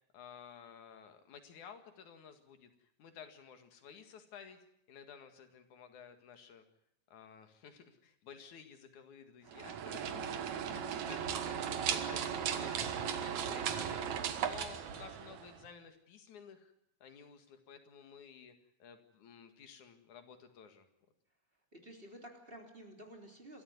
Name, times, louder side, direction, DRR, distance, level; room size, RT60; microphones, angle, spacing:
voice 1, 0.1-4.6 4.9-6.6 7.1-10.0 10.5-16.7 17.0-18.5 18.8-20.9, left 7 dB, 85° left, 7 dB, 3.4 m, -54 dB
sound 1, 9.5-15.7, right 8 dB, 80° right, 2.7 m, -37 dB
voice 2, 10.7-11.1 21.7-23.6, right 1 dB, 20° right, 2 dB, 3.6 m, -52 dB
28.5 x 13.5 x 9.5 m, 0.75 s
omnidirectional pair, 3.3 m